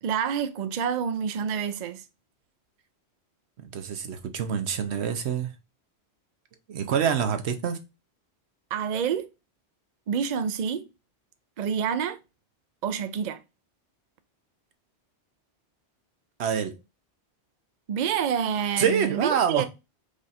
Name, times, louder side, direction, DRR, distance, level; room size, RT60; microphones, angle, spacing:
voice 1, 0.0-2.0 8.7-9.3 10.1-10.9 11.6-12.2 12.8-13.4 17.9-19.6, right 7 dB, 55° right, 0.5 m, -28 dB
voice 2, 3.6-5.5 6.7-7.8 16.4-16.7 18.8-19.6, right 7 dB, 80° right, 1.0 m, -26 dB
4.9 x 2.5 x 4.0 m
omnidirectional pair, 1.1 m